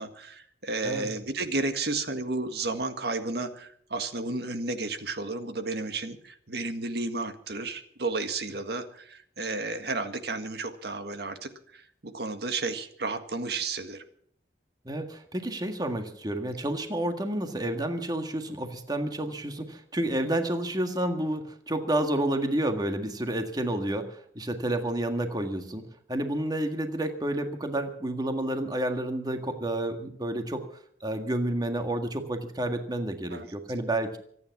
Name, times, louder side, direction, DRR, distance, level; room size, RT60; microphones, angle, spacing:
voice 1, 0.0-14.0 33.3-33.5, right 3 dB, 65° right, 8 dB, 1.8 m, -32 dB
voice 2, 14.9-30.7 31.0-34.2, right 1 dB, 25° right, 6 dB, 1.7 m, -30 dB
24.5 x 9.7 x 6.1 m, 0.64 s
head